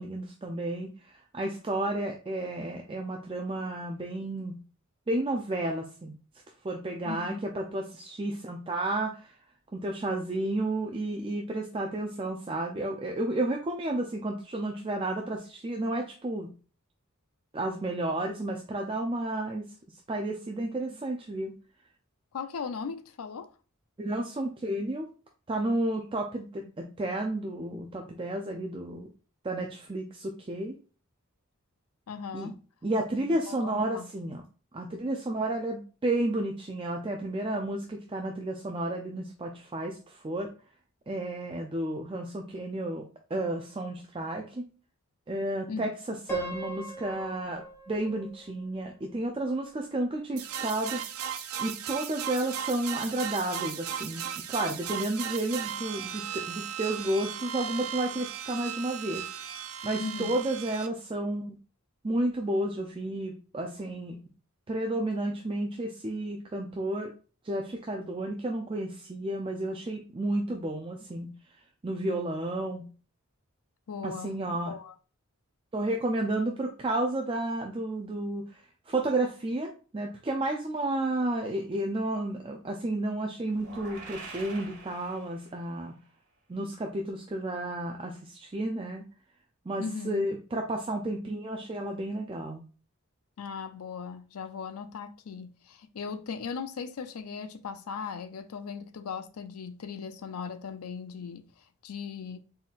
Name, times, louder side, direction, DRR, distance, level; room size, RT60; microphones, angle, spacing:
voice 1, 0.0-4.6 5.1-6.1 6.6-9.3 9.7-16.5 17.5-19.7 20.1-21.5 24.0-25.1 25.5-29.1 29.4-30.7 32.3-32.5 32.8-34.4 34.7-40.5 41.1-44.7 45.3-51.0 51.6-59.2 59.8-61.6 62.0-64.2 64.7-67.1 67.4-71.3 71.8-72.9 74.0-74.7 75.7-85.9 86.5-89.0 89.7-92.6, right 1 dB, 25° right, 0.4 m, -32 dB
voice 2, 7.0-7.4 22.3-23.5 32.1-32.5 33.3-34.1 45.7-45.9 60.0-60.4 73.9-74.4 74.7-74.9 89.8-90.3 93.4-101.5 101.8-102.4, left 5 dB, 85° left, 0.5 m, -38 dB
Piano, 46.3-49.3, right 1 dB, 10° left, 1.1 m, -40 dB
sound 1, 50.4-60.9, right 9 dB, 80° right, 0.5 m, -36 dB
sound 2, 83.5-85.7, right 3 dB, 55° right, 1.5 m, -45 dB
4.0 x 4.0 x 2.4 m
head